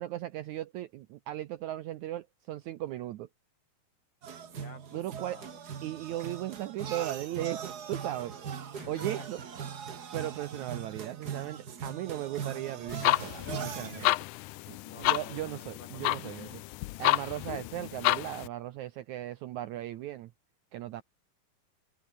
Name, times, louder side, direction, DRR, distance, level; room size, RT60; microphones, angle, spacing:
voice 1, 0.0-3.3 4.9-5.4 5.8-8.3 8.9-9.4 10.1-14.1 14.7-16.6 17.0-20.3 20.7-21.0, right 13 dB, 75° right, 1.8 m, -37 dB
sound 1, 4.2-14.1, right 7 dB, 55° right, 1.0 m, -40 dB
voice 2, 4.5-5.6 8.7-9.2 14.8-16.6 21.0-21.1, left 3 dB, 30° left, 5.0 m, -51 dB
sound 2, 12.9-18.5, left 19 dB, 85° left, 1.8 m, -30 dB
omnidirectional pair, 4.2 m